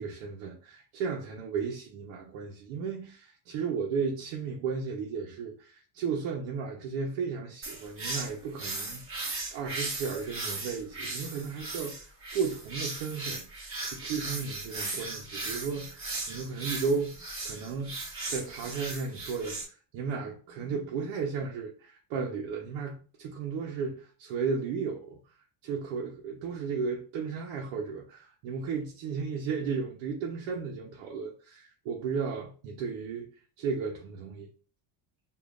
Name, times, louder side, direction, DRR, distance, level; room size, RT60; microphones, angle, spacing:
voice 1, 0.0-25.2 25.6-33.3 33.6-34.5, right 5 dB, 75° right, 0.9 m, -34 dB
sound 1, 7.6-19.6, right 3 dB, 25° right, 1.5 m, -37 dB
5.0 x 2.6 x 2.5 m
cardioid pair, 115°, 48 cm